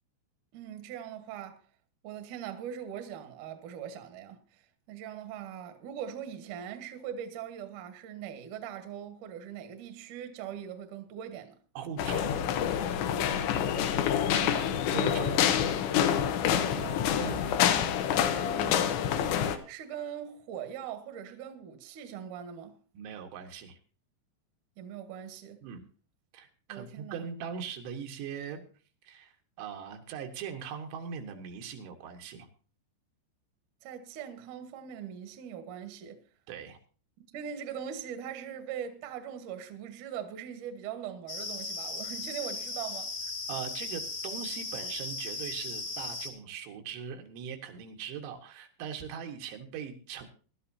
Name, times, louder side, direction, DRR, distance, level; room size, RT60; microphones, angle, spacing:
voice 1, 0.5-1.6 2.0-11.6 14.3-14.7 16.5-17.1 18.2-18.9 19.7-22.8 24.8-25.6 26.7-27.3 33.8-36.2 37.3-43.1, right 9 dB, 65° right, 2.1 m, -41 dB
voice 2, 11.8-12.4 14.9-15.4 17.2-17.4 23.0-23.8 25.6-25.8 26.3-28.7 29.1-32.5 36.5-36.8 43.5-50.3, right 7 dB, 85° right, 3.8 m, -40 dB
sound 1, 12.0-19.6, left 9 dB, 80° left, 3.2 m, -27 dB
sound 2, 41.3-46.3, left 3 dB, 35° left, 1.5 m, -37 dB
20.5 x 12.0 x 2.8 m
omnidirectional pair, 5.3 m